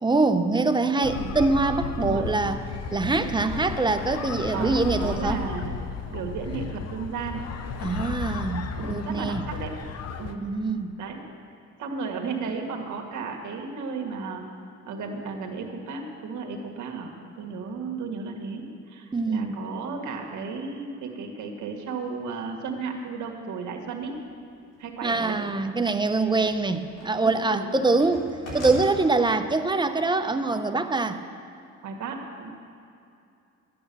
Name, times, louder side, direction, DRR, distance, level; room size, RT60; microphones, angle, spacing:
voice 1, 0.0-2.6 2.9-5.4 7.8-9.5 10.4-10.9 19.1-19.5 25.0-31.2, right 3 dB, 15° right, 8 dB, 0.7 m, -24 dB
sound 1, 1.0-10.4, left 5 dB, 55° left, 0.8 m, -34 dB
voice 2, 3.4-3.7 4.5-5.7 6.1-7.4 8.7-9.8 10.2-10.4 11.0-11.2 11.8-14.4 14.9-24.2 24.8-25.4 27.2-27.7 31.8-32.5, right 4 dB, 75° right, 2 dB, 1.6 m, -34 dB
sound 2, 24.3-24.4 26.0-27.4 27.6-28.8, left 1 dB, 90° left, 3.6 m, -38 dB
12.0 x 8.7 x 6.8 m, 2.6 s
cardioid pair, 90°, 30 cm